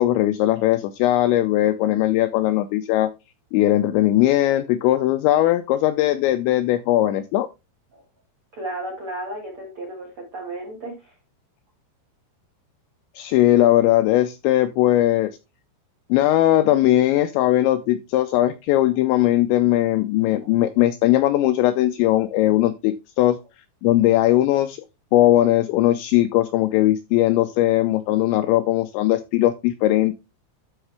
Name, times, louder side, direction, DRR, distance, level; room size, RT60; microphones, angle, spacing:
voice 1, 0.0-3.1 3.5-7.5 13.2-15.3 16.1-23.4 23.8-24.8 25.1-30.1, left 14 dB, 85° left, 11 dB, 2.6 m, -19 dB
voice 2, 8.5-11.1 20.4-20.5, right 1 dB, 75° right, 0 dB, 1.2 m, -34 dB
12.5 x 4.8 x 3.3 m, 0.26 s
omnidirectional pair, 5.7 m